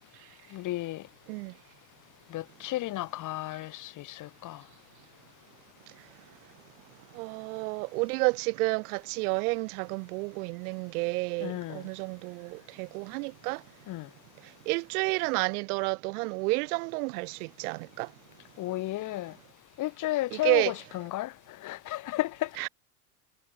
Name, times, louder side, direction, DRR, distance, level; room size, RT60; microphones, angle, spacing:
voice 1, 0.5-1.0 2.3-4.6 11.4-11.8 13.9-14.1 18.6-19.3 19.8-21.3 21.6-22.5, left 16 dB, 40° left, 0.9 m, -33 dB
voice 2, 7.1-13.6 14.7-18.1 20.3-20.7 22.6-22.7, right 27 dB, 70° right, 0.5 m, -30 dB
hypercardioid pair, 90°, 47 cm